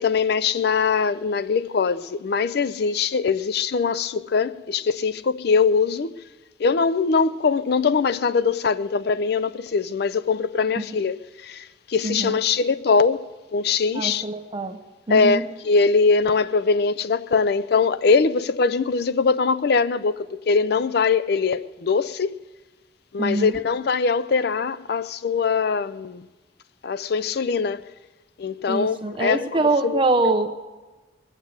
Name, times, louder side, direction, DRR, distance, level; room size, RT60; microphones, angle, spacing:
voice 1, 0.0-6.2 6.6-14.3 15.1-22.4 23.1-26.3 26.8-27.8 28.4-30.3, left 5 dB, 60° left, 0.4 m, -22 dB
voice 2, 12.0-12.4 13.9-14.8 15.1-15.4 23.2-23.6 28.7-30.5, right 2 dB, 30° right, 0.8 m, -24 dB
21.0 x 7.4 x 8.0 m
head